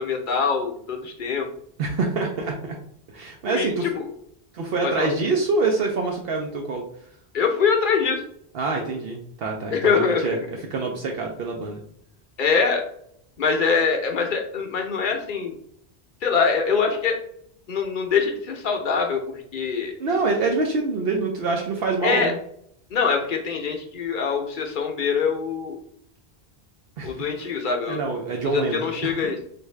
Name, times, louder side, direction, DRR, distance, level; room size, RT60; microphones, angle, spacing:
voice 1, 0.0-1.5 3.5-3.7 3.9-4.0 4.8-5.1 7.3-8.2 9.7-10.3 12.4-12.8 13.4-15.5 16.2-17.2 17.7-19.2 19.5-19.9 22.0-22.3 22.9-25.8 27.0-28.0 28.4-29.4, left 5 dB, 55° left, 3 dB, 0.7 m, -23 dB
voice 2, 1.8-2.8 3.1-3.9 4.5-6.8 8.5-10.4 10.7-11.8 20.0-22.3 27.0-27.2 27.9-29.2, right 3 dB, 70° right, 1 dB, 0.8 m, -25 dB
3.4 x 2.5 x 3.1 m, 0.66 s
omnidirectional pair, 1.1 m